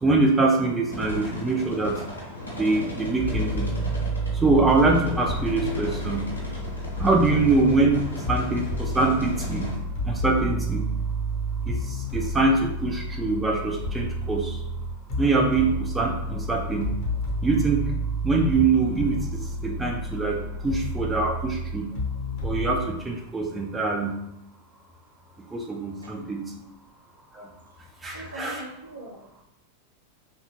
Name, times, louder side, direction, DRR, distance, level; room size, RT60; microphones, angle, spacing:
voice 1, 0.0-2.0 2.6-3.7 4.4-6.2 7.0-8.0 8.3-9.7 10.1-10.8 11.7-11.8 12.1-14.5 15.2-16.9 17.4-17.8 18.2-19.2 19.6-21.9 22.4-24.1 25.5-26.4 28.0-28.6, right 3 dB, 15° right, 0 dB, 0.3 m, -23 dB
sound 1, 0.9-9.7, left 1 dB, 85° left, 0.7 m, -36 dB
sound 2, 3.2-22.9, right 1 dB, 50° left, 0.8 m, -30 dB
voice 2, 26.0-26.7 28.1-29.2, right 1 dB, 75° right, -2 dB, 0.6 m, -41 dB
2.7 x 2.2 x 2.8 m, 0.81 s
figure-of-eight pair, 90°, 0 cm